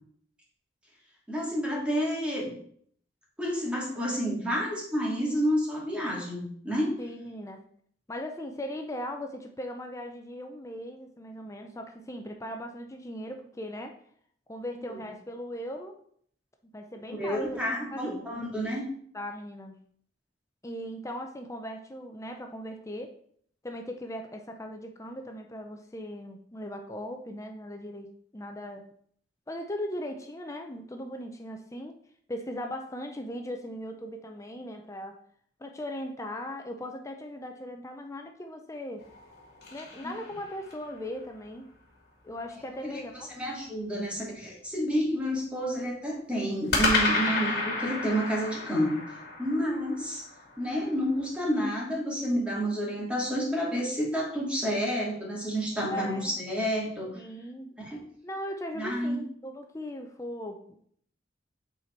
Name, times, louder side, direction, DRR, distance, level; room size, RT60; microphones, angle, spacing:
voice 1, 1.3-2.6 3.4-6.9 17.2-18.9 40.0-40.1 42.8-42.9 43.3-50.2 50.6-57.2 57.9-58.0 58.7-59.2, equal, 5° right, -4 dB, 2.4 m, -30 dB
voice 2, 7.0-7.6 8.1-14.0 14.5-16.0 16.7-18.2 19.1-19.8 20.6-23.2 23.6-28.9 29.5-32.0 32.3-35.2 35.6-39.1 39.7-41.7 42.2-43.3 55.9-56.4 57.1-57.7 58.2-60.6, equal, 15° left, 4 dB, 0.6 m, -38 dB
sound 1, 39.0-40.9 46.7-51.0, left 3 dB, 60° left, 2.6 m, -31 dB
8.1 x 4.2 x 4.5 m, 0.62 s
head